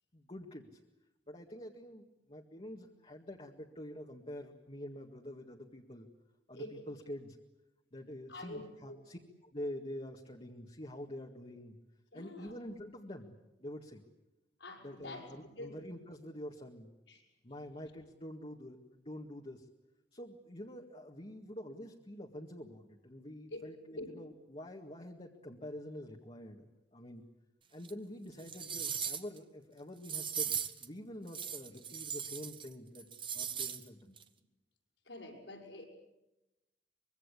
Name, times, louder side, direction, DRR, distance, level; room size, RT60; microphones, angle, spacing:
voice 1, 0.1-0.8 1.3-6.1 6.5-7.4 7.9-11.8 12.1-14.0 14.8-16.9 17.4-19.7 20.1-27.2 27.7-34.2, left 1 dB, 35° left, 0 dB, 1.9 m, -47 dB
voice 2, 8.3-9.0 12.1-12.5 14.6-15.2 15.6-15.8 17.1-17.2 23.5-24.1 35.0-35.8, left 1 dB, 85° left, 2 dB, 6.5 m, -46 dB
sound 1, 27.8-27.9 28.4-29.4 30.0-30.9 31.3-32.7 32.9-33.8 34.2-34.3, right 7 dB, 30° right, 1.3 m, -38 dB
25.0 x 23.0 x 8.4 m, 0.96 s
head